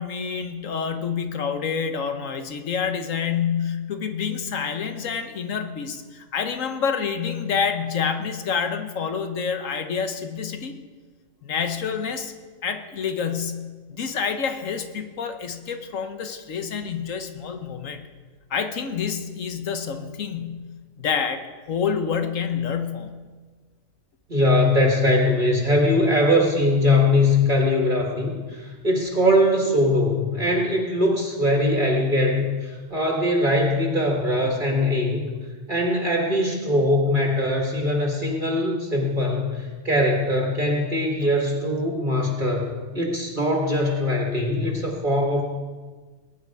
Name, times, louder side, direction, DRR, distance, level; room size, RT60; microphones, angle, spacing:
voice 1, 0.0-10.7 11.4-12.3 12.6-13.6 13.9-18.0 18.5-20.6 21.0-23.1, left 6 dB, 75° left, 7 dB, 1.4 m, -28 dB
voice 2, 24.3-35.3 35.7-45.4, left 1 dB, 40° right, 0 dB, 1.9 m, -21 dB
21.0 x 9.6 x 4.7 m, 1.4 s
omnidirectional pair, 1.4 m